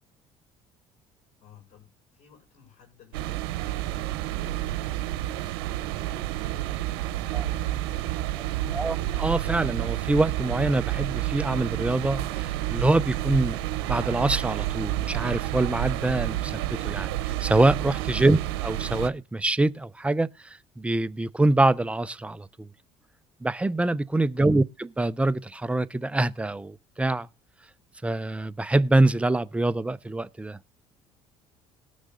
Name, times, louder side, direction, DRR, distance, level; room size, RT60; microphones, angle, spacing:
voice 1, 1.4-9.0 18.2-18.5 24.3-24.6, left 10 dB, 65° left, 6.4 m, -55 dB
sound 1, 3.1-19.1, right 15 dB, 90° right, 0.8 m, -30 dB
voice 2, 8.7-22.7 23.4-27.3 28.0-30.6, right 2 dB, 10° right, 0.6 m, -25 dB
19.0 x 6.4 x 3.8 m
supercardioid pair, 85°, 13 cm